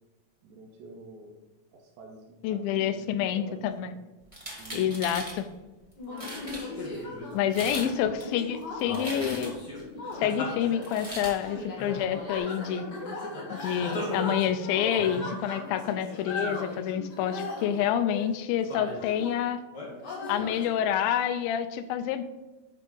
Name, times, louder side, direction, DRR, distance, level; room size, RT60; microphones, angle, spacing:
voice 1, 0.4-1.4 1.7-3.9 4.6-5.0 7.3-7.9, right 2 dB, 85° right, -1 dB, 2.8 m, -47 dB
voice 2, 2.4-3.9 4.7-5.5 7.3-9.5 10.2-12.9 13.5-19.6 20.3-22.2, left 9 dB, 85° left, 9 dB, 2.4 m, -28 dB
sound 1, 4.3-5.4 5.9-6.0 6.2-6.6 7.4-7.9 8.2-9.7 10.8-11.4, right 1 dB, 20° right, 0.9 m, -39 dB
sound 2, 6.0-19.4 19.7-20.6, left 2 dB, 40° left, 1.7 m, -37 dB
10.0 x 3.5 x 5.3 m, 1.1 s
omnidirectional pair, 4.2 m